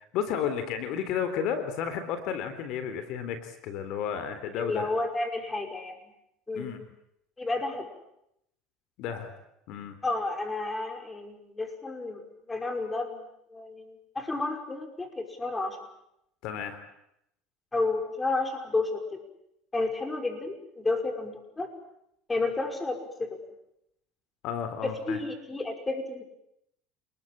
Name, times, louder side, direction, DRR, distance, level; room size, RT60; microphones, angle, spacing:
voice 1, 0.0-4.9 6.5-6.8 9.0-9.3 9.7-10.0 16.4-16.8 24.4-25.2, left 8 dB, 65° left, 10 dB, 3.7 m, -32 dB
voice 2, 4.6-6.0 6.5-6.7 7.4-7.9 10.0-12.2 12.5-15.8 17.7-19.2 19.7-21.7 22.3-23.4 24.8-26.2, left 3 dB, 15° left, 5 dB, 5.5 m, -31 dB
29.0 x 20.5 x 8.9 m, 0.78 s
supercardioid pair, 115°, 0 cm